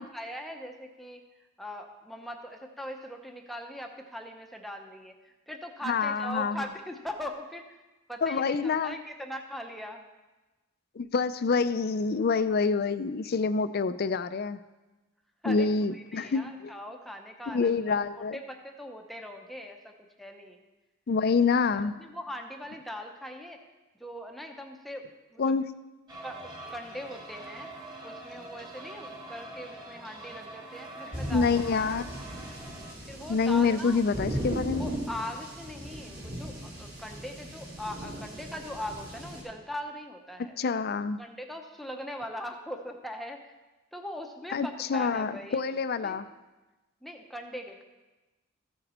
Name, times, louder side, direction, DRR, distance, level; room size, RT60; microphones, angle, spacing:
voice 1, 0.0-7.8 8.1-10.1 15.4-15.7 15.9-20.6 21.8-23.6 24.0-25.4 26.2-27.7 28.0-31.8 33.1-34.0 34.8-40.6 41.2-43.5 43.9-45.6 46.0-46.2 47.0-47.8, left 1 dB, ahead, 3 dB, 0.7 m, -41 dB
voice 2, 5.9-6.6 8.2-9.0 11.0-14.6 15.5-16.7 17.5-18.4 21.1-22.0 25.4-25.6 31.3-32.0 33.3-34.9 40.6-41.2 44.5-46.3, left 4 dB, 50° left, 12 dB, 0.4 m, -27 dB
sound 1, 26.1-32.9, right 2 dB, 20° right, 1.7 m, -44 dB
sound 2, 31.1-39.4, right 1 dB, 55° right, 3.6 m, -38 dB
14.5 x 6.6 x 4.3 m, 1.1 s
head